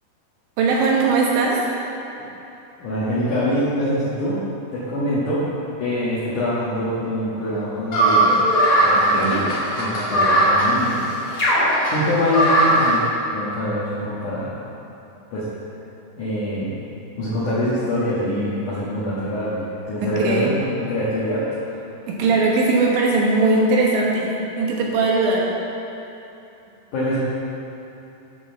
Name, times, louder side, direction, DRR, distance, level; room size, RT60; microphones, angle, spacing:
voice 1, 0.6-1.6 9.1-9.4 20.2-20.5 22.1-25.5, right 3 dB, 70° right, -2 dB, 3.2 m, -19 dB
voice 2, 2.8-4.4 4.7-5.5 5.8-8.4 8.8-11.0 11.9-14.5 15.3-15.5 16.2-16.7 17.2-19.6 19.9-21.8 26.9-27.2, equal, 65° left, -10 dB, 2.0 m, -24 dB
sound 1, 7.9-12.9, right 1 dB, 45° left, 1.2 m, -18 dB
9.6 x 6.0 x 6.9 m, 2.9 s
omnidirectional pair, 5.7 m